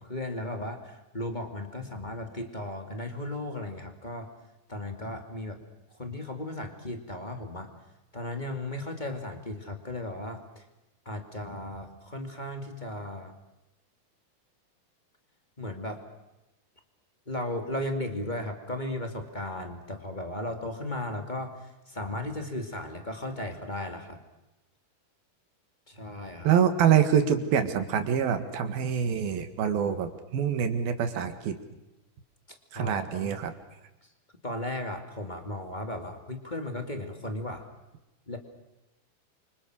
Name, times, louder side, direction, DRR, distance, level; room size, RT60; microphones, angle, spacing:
voice 1, 0.1-4.3 4.7-5.6 6.0-7.7 8.1-10.6 11.1-13.3 15.6-16.0 17.3-21.6 21.9-24.2 25.9-26.5 32.5-33.3 34.4-37.7 38.3-38.4, left 1 dB, 15° left, 5 dB, 1.8 m, -36 dB
voice 2, 26.5-31.6 32.7-33.5, right 8 dB, 80° right, 8 dB, 3.6 m, -25 dB
28.0 x 25.5 x 6.4 m, 0.98 s
omnidirectional pair, 4.3 m